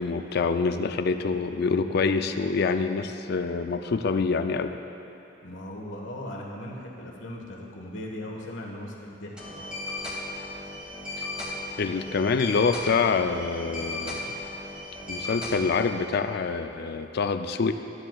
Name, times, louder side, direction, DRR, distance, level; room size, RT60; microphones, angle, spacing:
voice 1, 0.0-4.7 11.2-11.3 11.8-14.4 15.1-17.7, left 4 dB, 55° left, 8 dB, 0.4 m, -26 dB
voice 2, 5.4-9.7, left 1 dB, 80° left, -2 dB, 1.4 m, -38 dB
sound 1, 9.4-15.9, left 2 dB, 5° right, 1.5 m, -36 dB
12.5 x 9.9 x 2.4 m, 2.8 s
head